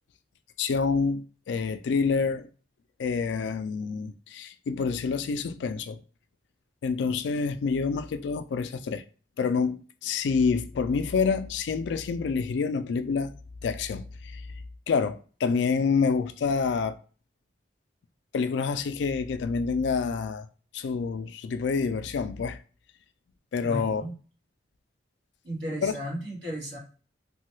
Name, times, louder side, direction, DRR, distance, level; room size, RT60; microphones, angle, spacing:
voice 1, 0.6-2.5 3.0-6.0 6.8-9.0 9.4-13.3 13.6-14.4 14.9-17.0 18.3-20.5 20.7-22.6 23.5-24.0 25.8-25.9, left 5 dB, 75° left, 0.3 m, -27 dB
voice 2, 23.6-24.2 25.4-26.8, equal, 70° right, 1.6 m, -34 dB
3.0 x 2.3 x 3.0 m
head